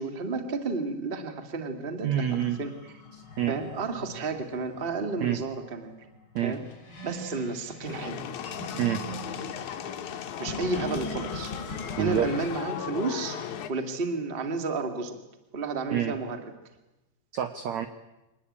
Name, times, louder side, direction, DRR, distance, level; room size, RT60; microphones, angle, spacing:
voice 1, 0.0-2.7 3.5-5.9 6.4-6.6 7.0-8.2 10.4-11.5 12.0-13.4 13.7-15.2 15.5-16.4, right 3 dB, 25° right, 7 dB, 1.1 m, -31 dB
voice 2, 2.0-2.6 3.1-3.5 5.2-5.4 6.3-6.5 8.8-9.0 12.0-12.3 15.9-16.1 17.3-17.9, right 10 dB, 75° right, 10 dB, 1.6 m, -27 dB
sound 1, 2.3-12.3, left 1 dB, 30° left, 5.4 m, -42 dB
sound 2, 7.8-13.7, left 9 dB, 65° left, 2.1 m, -37 dB
24.5 x 19.5 x 8.6 m, 1.0 s
omnidirectional pair, 4.8 m